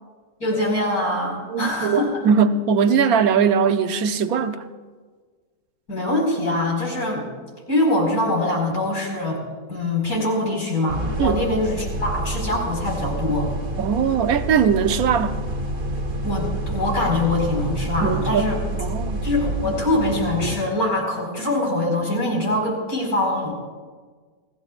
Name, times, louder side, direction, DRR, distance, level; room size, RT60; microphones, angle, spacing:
voice 1, 0.4-2.1 5.9-7.3 7.7-9.4 9.7-13.5 16.2-18.6 19.2-23.5, left 1 dB, 75° left, 5.6 m, -23 dB
voice 2, 1.5-4.6 11.2-11.4 13.8-15.4 18.0-18.4 18.8-19.2, right 6 dB, 75° right, 1.2 m, -20 dB
sound 1, 10.9-20.6, right 1 dB, 55° right, 1.8 m, -28 dB
28.0 x 16.5 x 2.5 m
omnidirectional pair, 1.6 m